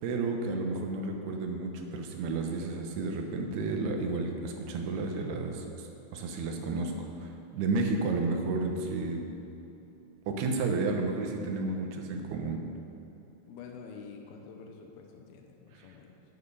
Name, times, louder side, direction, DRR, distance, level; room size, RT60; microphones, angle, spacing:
voice 1, 0.0-9.2 10.3-12.6, right 3 dB, 85° right, 3 dB, 3.0 m, -32 dB
voice 2, 13.4-16.2, left 5 dB, 80° left, 2 dB, 2.7 m, -48 dB
10.0 x 9.2 x 5.5 m, 2.9 s
omnidirectional pair, 4.5 m